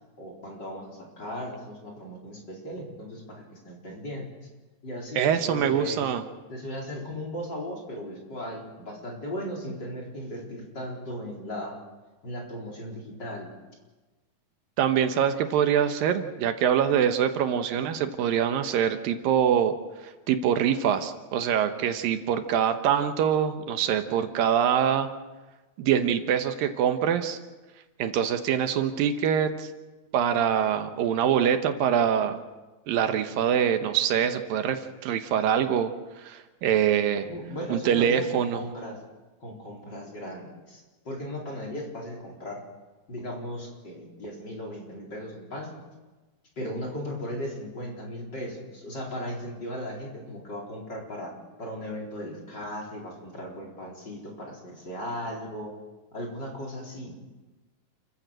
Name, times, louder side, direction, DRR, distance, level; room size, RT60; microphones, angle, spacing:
voice 1, 0.2-4.3 4.8-6.0 6.5-11.8 12.2-13.5 37.3-39.0 39.4-42.6 43.1-45.7 46.6-51.3 51.6-55.7 56.1-57.1, equal, 30° left, -1 dB, 4.6 m, -37 dB
voice 2, 5.2-6.2 14.8-19.8 20.3-25.1 25.8-27.4 28.0-29.7 30.1-32.4 32.9-35.9 36.2-37.3 37.7-38.6, right 9 dB, 80° right, 8 dB, 2.8 m, -24 dB
29.5 x 15.0 x 6.5 m, 1.2 s
omnidirectional pair, 4.1 m